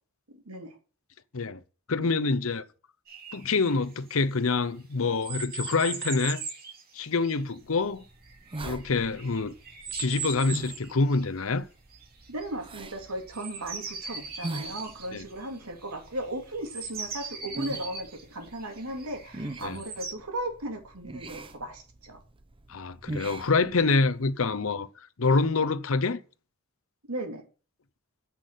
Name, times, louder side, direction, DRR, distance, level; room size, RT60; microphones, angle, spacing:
voice 1, 0.3-0.8 12.3-22.2 27.1-27.4, right 1 dB, 80° right, 2.9 m, -36 dB
voice 2, 1.9-2.6 3.3-6.4 6.9-8.0 8.6-9.5 10.0-11.7 15.1-15.2 19.6-19.8 22.7-24.9 25.2-26.2, left 3 dB, 65° left, 0.8 m, -26 dB
sound 1, 3.1-3.8 5.2-7.8 8.3-11.2 11.9-12.5 12.9-16.3 16.6-20.1, right 4 dB, 45° right, 3.0 m, -39 dB
sound 2, 7.6-24.2, right 2 dB, 25° right, 0.8 m, -43 dB
10.0 x 6.0 x 6.6 m
head